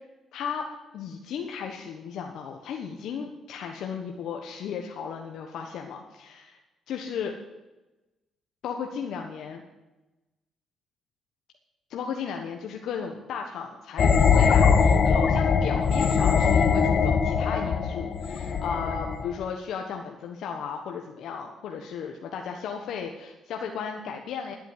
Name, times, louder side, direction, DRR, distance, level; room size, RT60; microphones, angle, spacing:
voice 1, 0.3-0.6 0.9-6.6 6.9-7.3 8.6-9.6 11.9-24.5, left 6 dB, 75° left, 3 dB, 1.3 m, -35 dB
sound 1, 14.0-19.4, left 6 dB, 55° left, 1.1 m, -21 dB
10.5 x 8.9 x 9.5 m, 1.0 s
cardioid pair, 90°, 0 cm